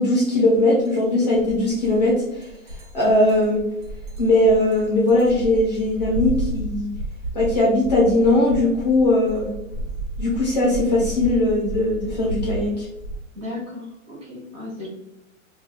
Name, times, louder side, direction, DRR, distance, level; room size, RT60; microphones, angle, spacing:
voice 1, 0.0-2.5 2.9-3.6 4.2-6.9 7.3-9.5 10.2-12.9, left 1 dB, 30° left, -4 dB, 0.6 m, -19 dB
sound 1, 0.9-1.0 1.3-13.2, right 2 dB, 85° right, 1.1 m, -32 dB
voice 2, 13.3-14.9, left 2 dB, 25° right, -5 dB, 1.3 m, -35 dB
4.8 x 2.3 x 2.2 m, 0.88 s
hypercardioid pair, 175°, 41 cm